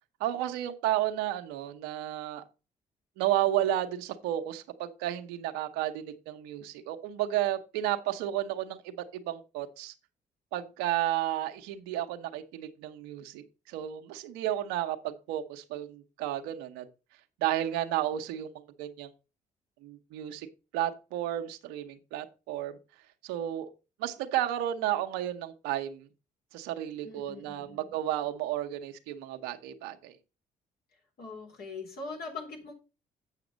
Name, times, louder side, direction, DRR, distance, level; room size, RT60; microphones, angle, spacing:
voice 1, 0.2-2.4 3.2-9.9 10.5-16.8 17.4-18.5 18.8-19.1 19.8-20.5 20.7-22.8 23.2-23.7 24.0-26.1 26.5-30.1, right 12 dB, 85° right, 8 dB, 0.9 m, -32 dB
voice 2, 27.0-27.9 31.2-32.7, left 4 dB, 65° left, 2 dB, 3.4 m, -42 dB
8.2 x 5.9 x 5.1 m, 0.30 s
supercardioid pair, 60°, 17 cm